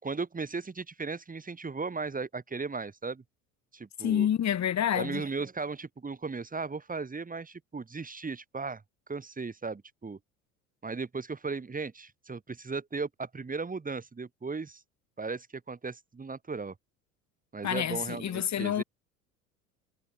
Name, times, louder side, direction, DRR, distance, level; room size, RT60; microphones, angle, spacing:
voice 1, 0.0-3.2 3.7-4.3 4.9-8.8 9.1-10.2 10.8-14.8 15.2-16.7 17.5-18.8, right 4 dB, 20° right, 4.9 m, -36 dB
voice 2, 4.0-5.2 17.6-18.8, left 10 dB, 40° left, 5.9 m, -28 dB
hypercardioid pair, 70°, 42 cm